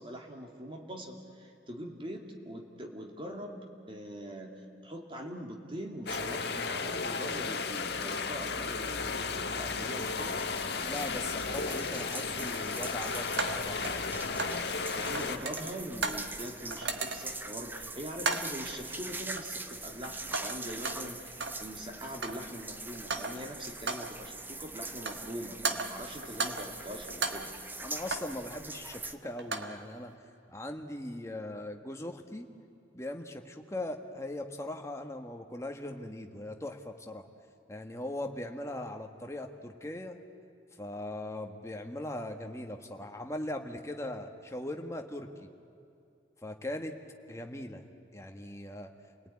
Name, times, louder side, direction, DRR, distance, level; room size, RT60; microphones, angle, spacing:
voice 1, 0.0-10.4 14.7-27.5, equal, 30° right, 2 dB, 2.7 m, -43 dB
sound 1, 6.1-15.4, left 4 dB, 60° left, 1.5 m, -34 dB
sound 2, 10.0-29.2, right 2 dB, 10° right, 0.9 m, -43 dB
voice 2, 10.8-13.9 27.8-30.1 30.5-32.5 32.9-37.3 37.7-40.2 40.7-45.5 46.4-47.0 47.3-47.8 48.1-48.9, left 1 dB, 15° left, 4 dB, 1.6 m, -40 dB
sound 3, 13.4-14.7 14.9-16.3 16.7-17.4 18.2-18.6 19.4-19.7 20.0-21.7 22.0-22.5 22.9-23.5 23.9-24.2 24.8-25.3 25.6-26.8 27.1-28.4 29.2-29.8, right 4 dB, 65° right, 1.6 m, -36 dB
29.5 x 19.5 x 9.8 m, 2.6 s
head